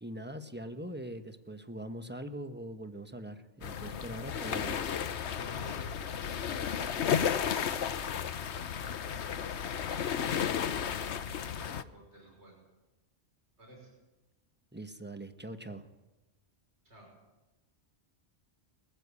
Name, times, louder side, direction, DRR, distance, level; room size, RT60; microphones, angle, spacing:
voice 1, 0.0-4.8 14.7-15.9, right 1 dB, 10° right, 8 dB, 1.2 m, -42 dB
sound 1, 3.6-11.8, left 8 dB, 75° left, 1.1 m, -33 dB
voice 2, 4.3-4.8 5.5-9.4 10.3-10.9 11.6-12.5 13.6-13.9 16.8-17.1, right 2 dB, 75° right, 0 dB, 6.0 m, -53 dB
21.5 x 14.5 x 8.5 m, 1.1 s
omnidirectional pair, 1.1 m